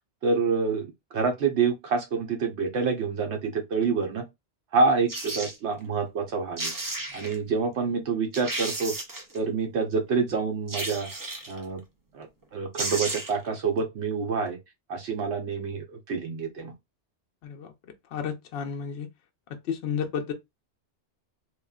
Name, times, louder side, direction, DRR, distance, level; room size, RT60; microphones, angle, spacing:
voice 1, 0.2-4.2 4.7-6.7 7.1-8.9 9.3-11.1 11.5-11.8 12.1-14.6 14.9-16.7, right 4 dB, 75° right, 1.1 m, -27 dB
sound 1, 5.1-5.6 6.3-6.4 6.6-7.4 7.9-8.0 8.3-9.4 10.7-11.6 12.4-12.5 12.7-13.5 13.8-13.9, right 2 dB, 30° right, 0.3 m, -33 dB
voice 2, 17.4-19.1 19.6-20.3, left 7 dB, 65° left, 0.7 m, -32 dB
3.0 x 2.3 x 2.3 m
omnidirectional pair, 1.2 m